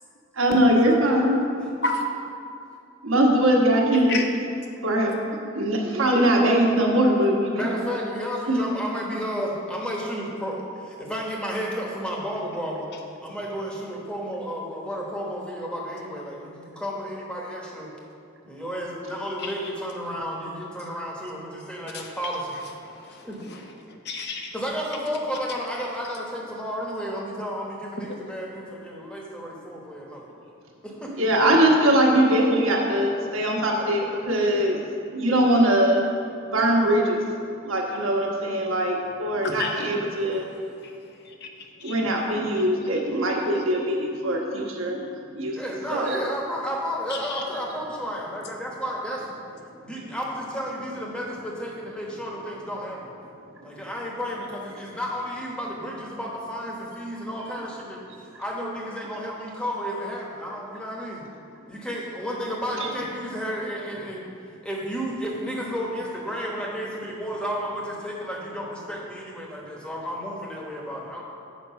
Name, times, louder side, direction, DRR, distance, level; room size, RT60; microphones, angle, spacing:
voice 1, 0.4-1.4 3.0-4.2 4.8-5.1 5.5-7.8 8.5-8.6 31.2-34.8 35.1-36.0 36.5-37.2 37.6-40.5 41.8-45.1 45.3-45.6 45.9-46.2, right 1 dB, 80° right, -1 dB, 1.3 m, -21 dB
voice 2, 7.5-12.9 13.2-17.9 18.5-22.6 23.2-23.4 24.5-30.3 30.8-31.3 45.5-49.4 49.8-53.1 53.6-58.0 58.4-61.2 61.7-64.3 64.6-71.2, equal, 5° left, -3 dB, 1.1 m, -32 dB
voice 3, 19.4-19.7 21.9-22.1 22.8-23.6 24.0-24.6 39.4-39.9 40.3-40.4 40.8-40.9 41.2-42.0 47.1-47.4, left 3 dB, 55° left, 2 dB, 0.8 m, -32 dB
7.4 x 5.3 x 5.7 m, 2.6 s
head